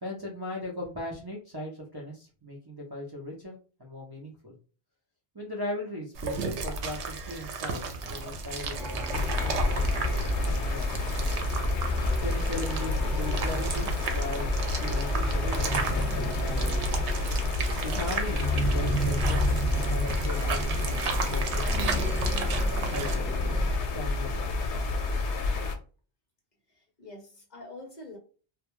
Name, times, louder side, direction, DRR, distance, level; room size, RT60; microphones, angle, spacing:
voice 1, 0.0-4.5 5.3-10.9 12.2-14.5 14.8-16.8 17.8-22.2 22.9-23.5 23.9-24.9, left 1 dB, 30° right, -4 dB, 0.4 m, -38 dB
sound 1, 6.1-23.1, right 4 dB, 85° right, 0.9 m, -35 dB
sound 2, 8.8-23.7, equal, ahead, 0.7 m, -32 dB
sound 3, 9.1-25.8, left 3 dB, 90° left, 0.9 m, -30 dB
voice 2, 26.7-28.2, left 2 dB, 45° left, 0 dB, 0.7 m, -45 dB
2.3 x 2.2 x 2.9 m, 0.37 s
omnidirectional pair, 1.1 m